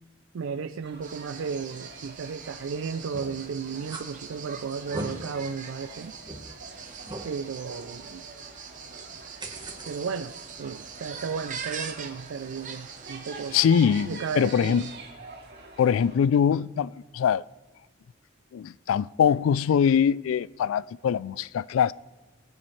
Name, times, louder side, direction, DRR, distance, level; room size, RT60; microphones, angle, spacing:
voice 1, 0.3-6.1 7.2-8.3 9.9-10.3 10.6-13.6 14.0-14.9, right 5 dB, 75° right, 0.4 m, -34 dB
sound 1, 0.8-16.2, right 3 dB, 55° right, 2.4 m, -47 dB
sound 2, 1.0-15.0, right 6 dB, 40° right, 0.9 m, -43 dB
sound 3, 3.1-3.4 3.8-4.0 4.7-5.1 5.6-5.7 6.2-6.4 7.1-7.3 9.4-9.9, right 2 dB, 20° right, 1.3 m, -37 dB
voice 2, 13.5-14.9 15.8-17.4 18.5-21.9, left 7 dB, 80° left, 0.3 m, -23 dB
20.5 x 8.9 x 3.2 m
head